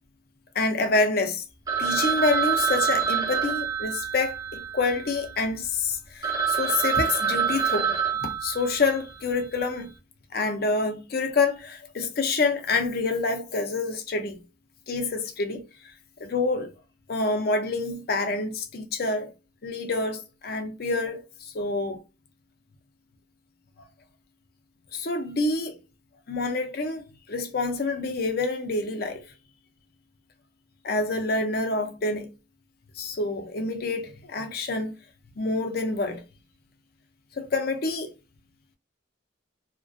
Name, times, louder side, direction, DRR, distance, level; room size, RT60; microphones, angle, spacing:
voice 1, 0.5-1.4 1.8-7.9 8.2-9.9 10.3-14.4 14.9-15.6 16.2-16.7 17.1-19.3 19.6-21.3 21.5-22.0 24.9-25.8 26.3-27.0 27.3-29.2 30.8-32.3 33.0-34.9 35.4-36.2 37.4-38.1, left 3 dB, 50° left, 0.5 m, -27 dB
Telephone, 1.7-5.5 5.9-6.0 6.2-9.1, right 7 dB, 20° right, 0.4 m, -27 dB
2.4 x 2.1 x 2.5 m
head